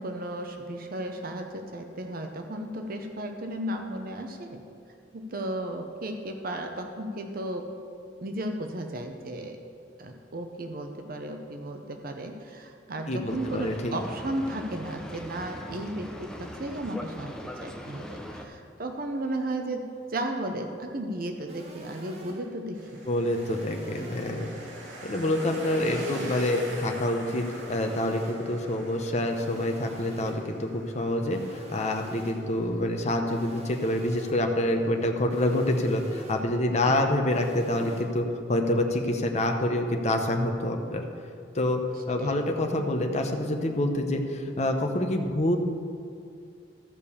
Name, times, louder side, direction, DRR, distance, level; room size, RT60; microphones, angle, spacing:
voice 1, 0.0-4.7 5.1-7.7 8.2-9.6 10.0-23.0 24.0-24.1 36.8-37.0 42.2-42.4, right 1 dB, 55° right, 5 dB, 0.8 m, -34 dB
voice 2, 13.1-13.9 23.1-24.5 25.0-41.0 41.5-41.8 42.1-45.6, left 1 dB, 40° left, 3 dB, 0.8 m, -27 dB
Boat Water vehicle, 13.3-18.4, equal, 5° left, 0.7 m, -41 dB
sound 1, 21.5-22.6 23.3-24.6 25.3-26.6 27.3-28.6 29.3-30.6 31.3-32.6 33.3-34.6 35.3-36.6 37.3-38.0, right 1 dB, 35° right, 1.5 m, -45 dB
sound 2, 22.7-35.9, right 1 dB, 90° right, 2.1 m, -44 dB
13.5 x 5.2 x 7.0 m, 2.4 s
head